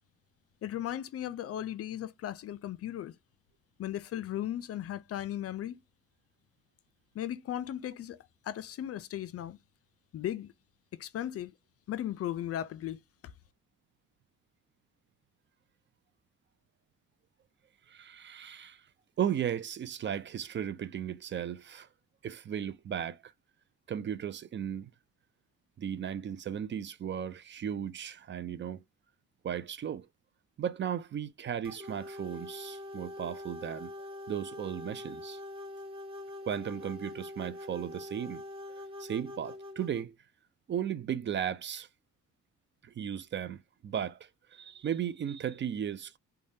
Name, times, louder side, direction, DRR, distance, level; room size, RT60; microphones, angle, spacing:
voice 1, 0.6-3.2 3.8-5.8 7.1-8.2 8.4-9.6 10.1-10.5 11.0-11.5 11.9-13.0, left 11 dB, 50° left, 0.4 m, -36 dB
voice 2, 17.9-18.8 19.2-21.9 22.2-23.3 23.9-24.9 25.8-28.8 29.4-30.1 30.6-33.9 34.3-35.4 36.5-38.4 38.7-40.2 40.7-41.9 42.8-46.2, right 9 dB, 40° right, 0.4 m, -36 dB
sound 1, 31.6-40.0, left 1 dB, 15° right, 1.4 m, -44 dB
3.3 x 2.2 x 2.6 m
cardioid pair, 90°, 30 cm